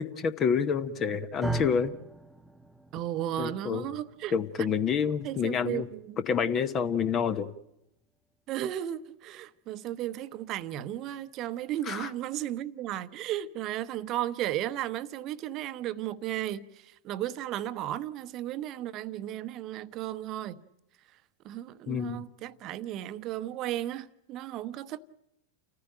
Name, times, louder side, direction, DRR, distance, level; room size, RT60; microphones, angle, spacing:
voice 1, 0.0-1.9 3.4-3.9 4.3-5.9 6.2-7.5 11.9-12.1 21.9-22.2, left 6 dB, 30° left, 1.0 m, -28 dB
sound 1, 1.4-9.7, right 2 dB, ahead, 0.8 m, -42 dB
voice 2, 2.9-4.3 5.2-6.2 8.5-20.6 21.4-25.0, right 12 dB, 35° right, 0.9 m, -34 dB
30.0 x 15.0 x 8.9 m
figure-of-eight pair, 90°, 0 cm